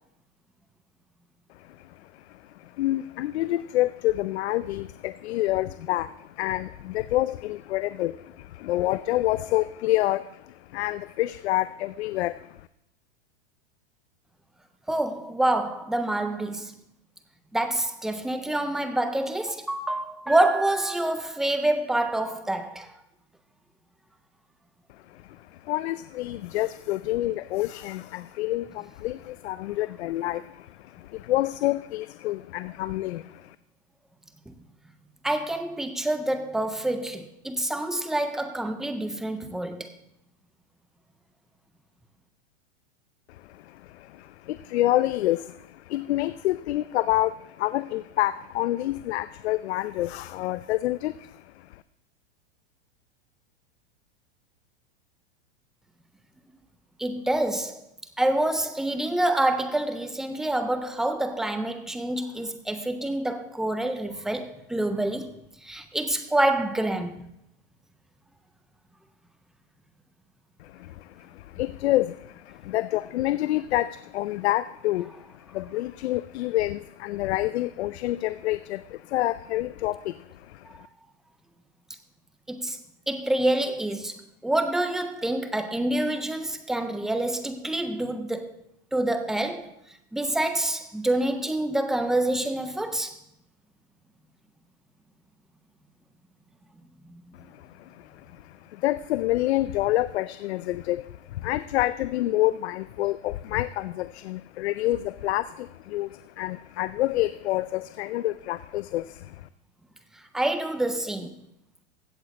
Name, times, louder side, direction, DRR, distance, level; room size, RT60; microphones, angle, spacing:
voice 1, 1.6-12.7 25.1-33.6 43.3-51.8 70.6-80.8 97.3-109.5, left 16 dB, 75° left, 0.5 m, -28 dB
voice 2, 14.9-16.8 17.5-22.9 34.5-34.6 35.2-39.9 57.0-57.8 58.2-65.4 65.6-67.3 82.5-82.8 83.1-88.5 88.9-89.7 90.1-93.2 97.1-97.2 110.3-111.3, right 1 dB, ahead, 0.3 m, -27 dB
16.0 x 6.9 x 4.1 m
supercardioid pair, 145°, 33 cm